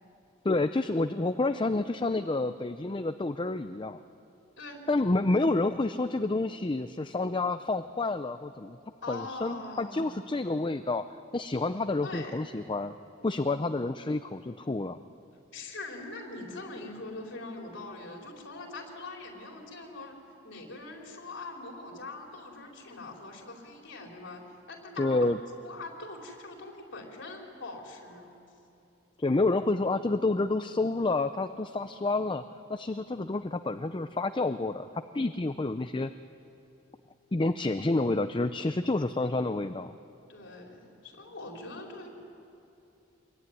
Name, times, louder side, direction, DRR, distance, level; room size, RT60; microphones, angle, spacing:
voice 1, 0.4-4.0 4.9-8.8 9.1-11.0 11.3-12.9 13.2-15.0 25.0-25.4 29.2-32.4 32.7-34.9 35.1-36.1 37.3-39.9, left 2 dB, 25° left, 10 dB, 0.5 m, -29 dB
voice 2, 9.0-10.1 12.0-12.3 15.5-20.2 20.4-25.3 25.6-28.3 40.3-42.1, left 2 dB, 65° left, 1 dB, 4.5 m, -42 dB
26.0 x 22.0 x 9.7 m, 2.7 s
head